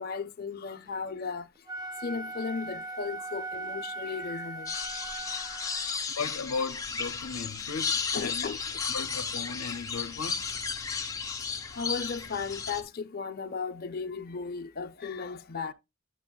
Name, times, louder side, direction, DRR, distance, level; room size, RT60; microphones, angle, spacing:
voice 1, 0.0-1.5 2.0-4.7 5.7-5.8 8.1-8.6 11.8-15.7, left 5 dB, 45° left, 0.5 m, -35 dB
Wind instrument woodwind instrument, 1.5-6.0, right 2 dB, 20° right, 0.4 m, -39 dB
sound 1, 4.7-12.8, left 5 dB, 15° left, 0.8 m, -34 dB
voice 2, 6.2-8.5 8.9-10.6 11.7-12.0, left 4 dB, 90° left, 0.6 m, -36 dB
Engine, 6.8-12.8, left 3 dB, 65° right, 3.4 m, -53 dB
9.6 x 7.5 x 2.3 m
head